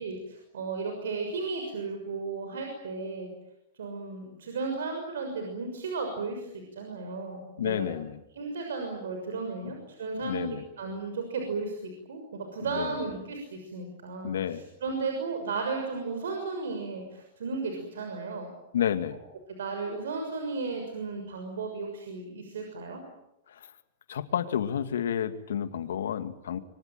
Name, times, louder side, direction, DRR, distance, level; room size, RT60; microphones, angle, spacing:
voice 1, 0.0-3.3 3.7-7.9 8.3-10.5 10.8-18.5 19.6-23.0, right 4 dB, 90° right, 4 dB, 6.5 m, -34 dB
voice 2, 7.6-8.2 9.6-9.8 10.2-10.6 12.7-12.9 14.2-14.6 18.7-19.2 23.5-23.7 24.1-26.6, left 9 dB, 90° left, 10 dB, 2.2 m, -30 dB
26.0 x 24.0 x 9.2 m, 0.87 s
hypercardioid pair, 140°, 0 cm